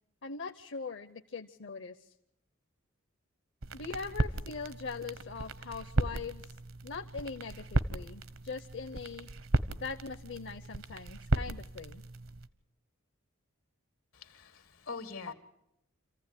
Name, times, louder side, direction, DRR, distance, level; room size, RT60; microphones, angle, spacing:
voice 1, 0.2-2.1 3.7-6.6 6.8-9.3 9.8-12.0 15.3-15.4, left 4 dB, 60° left, 0.8 m, -41 dB
sound 1, 3.6-12.5, right 2 dB, 75° right, 1.1 m, -35 dB
voice 2, 14.1-15.3, left 4 dB, 85° left, 2.3 m, -44 dB
27.5 x 15.0 x 9.8 m
head